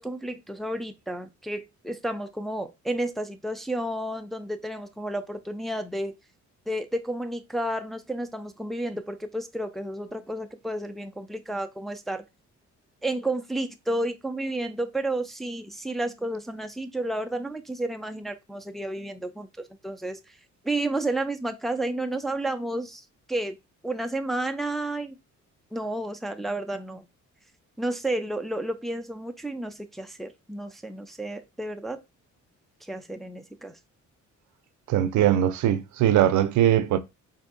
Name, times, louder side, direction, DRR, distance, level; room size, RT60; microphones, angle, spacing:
voice 1, 0.0-6.1 6.7-12.2 13.0-19.5 19.8-20.4 20.6-23.6 23.8-25.2 25.7-27.0 27.8-32.0 32.8-33.8, right 1 dB, ahead, 0.5 m, -31 dB
voice 2, 34.9-37.0, right 11 dB, 75° right, 0.5 m, -21 dB
4.4 x 2.7 x 2.5 m
cardioid pair, 90°, 30 cm